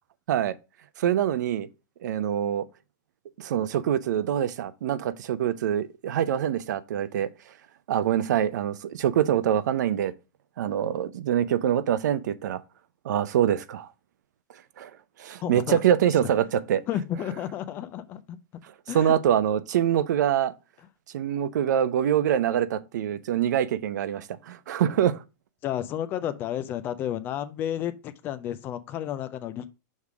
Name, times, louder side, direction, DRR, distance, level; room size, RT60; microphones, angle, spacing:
voice 1, 1.0-1.7 2.0-2.6 3.4-7.3 7.9-10.1 10.6-12.6 13.0-13.9 14.8-14.9 15.2-16.8 18.9-20.5 21.1-25.2, right 10 dB, 65° right, 0.6 m, -25 dB
voice 2, 15.4-15.8 16.9-18.4 18.9-19.2 25.6-29.7, left 11 dB, 20° left, 0.4 m, -32 dB
6.4 x 3.6 x 4.9 m
supercardioid pair, 165°, 10 cm